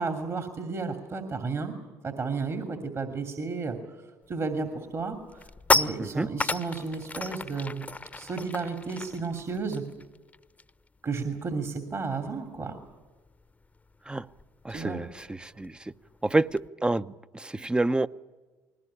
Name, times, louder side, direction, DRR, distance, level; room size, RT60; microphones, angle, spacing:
voice 1, 0.0-1.7 2.0-3.8 4.3-5.2 5.7-7.9 8.1-9.8 11.0-12.8 14.7-15.0, right 4 dB, 40° right, 6 dB, 2.7 m, -32 dB
sound 1, 4.3-4.6 4.9-10.9 11.1-11.4 11.7-16.7, left 3 dB, 20° left, 0.9 m, -33 dB
voice 2, 14.6-15.9 16.2-18.1, right 2 dB, 15° right, 14 dB, 0.7 m, -28 dB
21.0 x 18.5 x 9.9 m, 1.3 s
hypercardioid pair, 65°, 7 cm